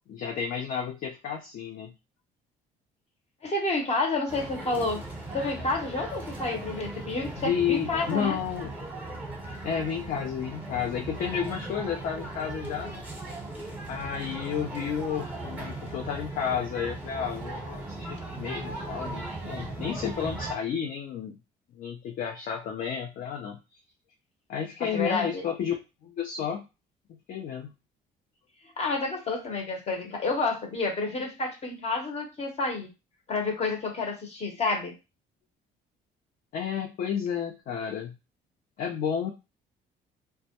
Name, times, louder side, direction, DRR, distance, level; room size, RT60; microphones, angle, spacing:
voice 1, 0.1-1.9 7.4-8.7 9.6-13.0 13.9-21.3 21.7-23.6 24.5-25.8 26.0-26.7 27.3-27.7 36.5-38.2 38.8-39.3, left 8 dB, 55° left, 3 dB, 0.4 m, -31 dB
voice 2, 3.4-5.0 5.3-8.4 24.8-25.4 28.8-32.9 33.3-34.9, left 3 dB, 40° left, 2 dB, 0.8 m, -29 dB
sound 1, 4.3-20.5, right 2 dB, 10° right, 0.8 m, -38 dB
2.2 x 2.1 x 2.8 m, 0.28 s
cardioid pair, 110°, 17 cm